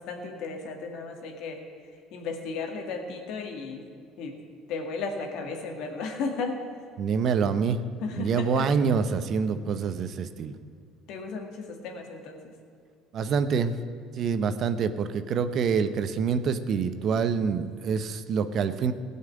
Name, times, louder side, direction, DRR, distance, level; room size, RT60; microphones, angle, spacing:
voice 1, 0.0-1.6 2.1-3.9 4.2-4.3 4.7-6.6 8.0-8.7 11.1-12.5, left 4 dB, 70° left, 3 dB, 2.1 m, -34 dB
voice 2, 7.0-7.8 8.1-10.6 13.1-13.7 14.2-18.9, right 6 dB, 55° right, 10 dB, 0.8 m, -26 dB
16.5 x 5.6 x 9.6 m, 2.3 s
supercardioid pair, 85°, 0 cm